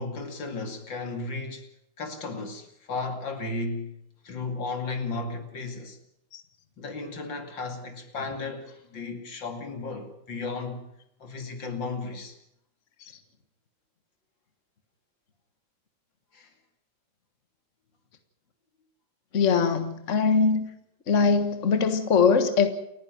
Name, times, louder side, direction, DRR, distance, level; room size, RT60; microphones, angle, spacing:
voice 1, 0.0-1.6 2.0-4.0 4.2-6.0 6.8-10.8 11.2-12.4 16.3-16.5, left 3 dB, 80° left, 3.2 m, -34 dB
voice 2, 19.3-20.7 21.1-22.7, left 5 dB, 45° left, 1.8 m, -22 dB
29.0 x 10.5 x 9.3 m
omnidirectional pair, 2.0 m